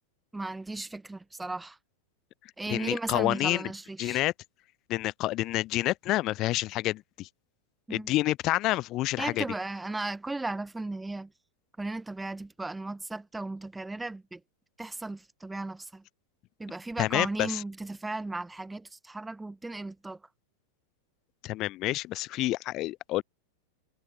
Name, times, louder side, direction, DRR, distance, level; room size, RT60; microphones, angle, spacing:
voice 1, 0.3-1.8 2.6-4.2 7.9-8.1 9.2-11.3 11.8-14.4 14.8-16.0 16.6-20.2, right 2 dB, 5° right, 6.2 m, -36 dB
voice 2, 2.7-3.6 4.0-4.3 4.9-7.3 7.9-9.4 17.0-17.6 21.4-23.2, left 17 dB, 35° left, 7.3 m, -28 dB
figure-of-eight pair, 90°, 0 cm